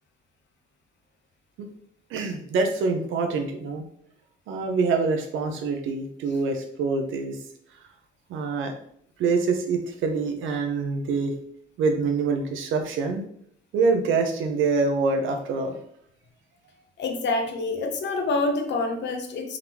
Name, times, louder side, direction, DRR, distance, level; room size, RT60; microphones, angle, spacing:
voice 1, 2.1-3.8 4.5-7.4 8.3-8.7 9.2-11.3 11.8-13.2 13.7-15.8, right 4 dB, 80° right, 4 dB, 0.8 m, -25 dB
voice 2, 17.0-19.6, left 3 dB, 65° left, 4 dB, 0.8 m, -27 dB
3.7 x 3.6 x 2.9 m, 0.67 s
cardioid pair, 90°, 20 cm